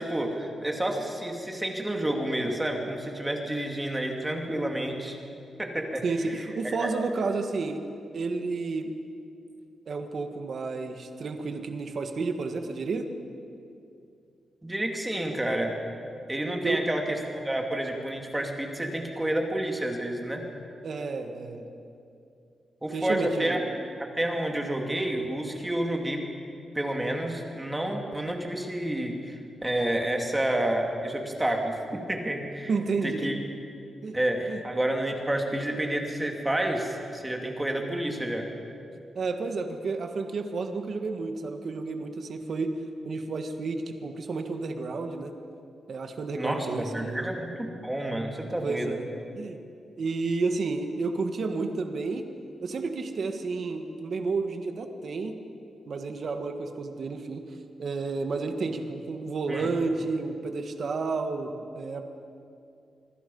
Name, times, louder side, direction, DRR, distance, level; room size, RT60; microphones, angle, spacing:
voice 1, 0.0-5.2 5.6-6.9 14.6-15.7 16.3-20.4 22.8-23.6 24.1-26.2 26.7-32.7 33.0-33.4 34.1-38.5 46.3-49.0 59.5-59.7, right 1 dB, 10° right, 2 dB, 2.3 m, -29 dB
voice 2, 6.0-7.8 8.1-8.9 9.9-13.1 16.6-16.8 20.8-21.7 22.9-23.8 32.7-33.3 34.0-34.2 34.5-34.6 39.1-42.7 43.0-45.3 45.9-47.3 48.6-49.0 49.3-49.6 50.0-52.3 52.6-55.3 55.9-62.0, right 4 dB, 45° right, 6 dB, 1.6 m, -31 dB
26.0 x 23.5 x 5.5 m, 2.5 s
wide cardioid pair, 180°, 0 cm